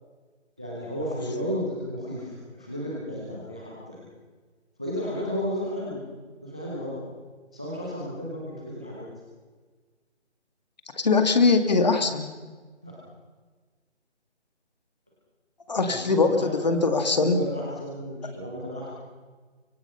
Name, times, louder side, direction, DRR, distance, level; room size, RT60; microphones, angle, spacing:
voice 1, 0.6-4.0 4.8-6.0 6.4-7.0 7.5-9.1 12.8-12.9 15.8-18.9, equal, 5° right, -4 dB, 0.8 m, -33 dB
voice 2, 11.0-12.3 15.7-17.4, left 4 dB, 35° left, 8 dB, 2.0 m, -21 dB
24.5 x 24.0 x 5.6 m, 1.4 s
figure-of-eight pair, 165°, 35 cm